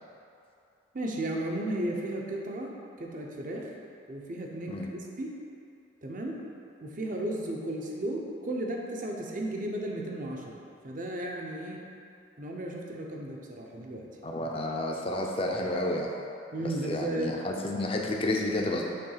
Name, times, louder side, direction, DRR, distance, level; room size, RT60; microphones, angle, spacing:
voice 1, 0.9-3.7 4.1-4.8 5.2-5.4 6.0-6.4 6.8-11.8 12.4-14.1 16.5-17.3, right 1 dB, 40° right, 0 dB, 0.7 m, -34 dB
voice 2, 14.2-16.1 16.6-18.8, left 1 dB, 30° left, 0 dB, 0.5 m, -30 dB
6.7 x 3.1 x 5.6 m, 2.6 s
head